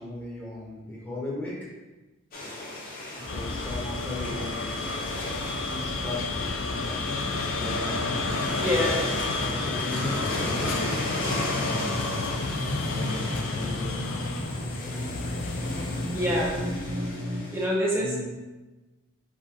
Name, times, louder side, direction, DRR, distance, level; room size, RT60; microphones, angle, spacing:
voice 1, 0.0-1.6 3.3-4.8 5.7-9.0 9.4-12.1 12.9-14.0 18.0-18.3, left 1 dB, 10° left, -7 dB, 1.1 m, -38 dB
sound 1, 2.3-17.7, left 1 dB, 40° left, 0.8 m, -35 dB
sound 2, 3.3-17.1, left 3 dB, 75° left, 0.4 m, -31 dB
voice 2, 8.6-9.0 16.1-16.6 17.5-18.1, equal, 10° right, -4 dB, 0.8 m, -25 dB
sound 3, 8.9-17.4, equal, 50° right, 0.7 m, -37 dB
4.7 x 2.5 x 4.3 m, 1.1 s
head